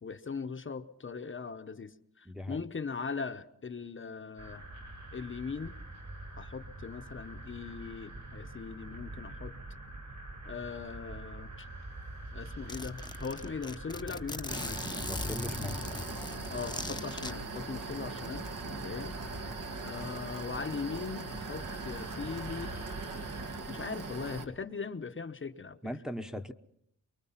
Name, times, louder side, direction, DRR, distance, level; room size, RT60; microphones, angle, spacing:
voice 1, 0.0-4.6 5.1-5.8 6.4-9.5 10.4-11.7 12.3-14.8 16.5-19.2 19.4-22.7 23.7-25.8, left 5 dB, 40° left, 8 dB, 0.9 m, -40 dB
voice 2, 2.3-2.6 15.1-15.8 25.8-26.5, left 1 dB, ahead, 6 dB, 1.0 m, -39 dB
sound 1, 4.4-23.6, right 2 dB, 55° right, 4.5 m, -46 dB
Zipper (clothing), 11.9-12.0 12.2-12.3 12.7-17.3, left 3 dB, 15° left, 0.9 m, -39 dB
sound 2, 14.5-24.4, right 3 dB, 75° right, 2.3 m, -40 dB
24.0 x 23.5 x 5.8 m, 0.72 s
wide cardioid pair, 125°, 33 cm